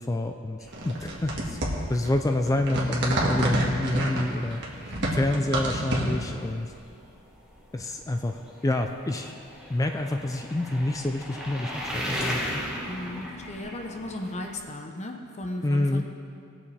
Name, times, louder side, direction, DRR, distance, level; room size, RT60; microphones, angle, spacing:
voice 1, 0.0-1.6 1.9-4.6 5.1-6.7 7.7-8.4 8.6-9.3 9.7-12.6 15.6-16.0, left 1 dB, 15° left, 5 dB, 0.3 m, -27 dB
sound 1, 0.6-14.6, equal, 5° right, 1.4 m, -39 dB
sound 2, 0.7-6.4, right 1 dB, 55° right, 1.6 m, -29 dB
voice 2, 4.9-5.3 12.8-16.0, left 1 dB, 35° left, 3 dB, 0.8 m, -36 dB
18.5 x 7.0 x 3.3 m, 2.5 s
head